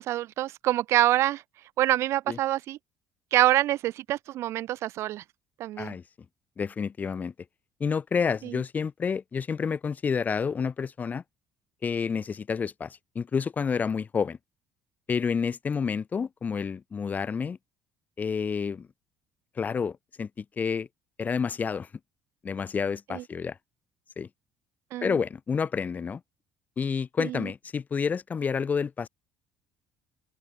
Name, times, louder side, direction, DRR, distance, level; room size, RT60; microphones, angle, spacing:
voice 1, 0.0-1.4 1.8-2.8 3.3-5.2 5.6-5.9 8.4-8.6 23.1-23.2 24.9-25.2 27.2-27.5, right 14 dB, 65° right, 0.4 m, -26 dB
voice 2, 6.6-7.3 7.8-11.2 11.8-14.4 15.1-17.6 18.2-18.9 19.6-20.9 21.2-21.9 22.4-23.6 24.2-24.3 25.0-26.2 26.8-29.1, left 6 dB, 35° left, 0.6 m, -29 dB
open air
supercardioid pair, 85°, 5 cm